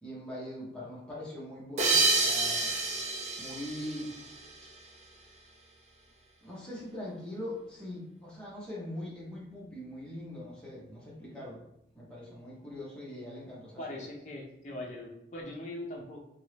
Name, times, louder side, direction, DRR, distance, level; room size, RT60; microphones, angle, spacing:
voice 1, 0.0-2.7 3.4-4.2 4.6-4.7 6.4-11.6 11.9-14.0, left 1 dB, 5° left, -7 dB, 1.0 m, -42 dB
sound 1, 1.8-4.9, right 3 dB, 40° right, 0.4 m, -29 dB
voice 2, 13.8-16.3, left 1 dB, 40° left, -1 dB, 0.6 m, -41 dB
3.0 x 2.6 x 3.2 m, 0.79 s
head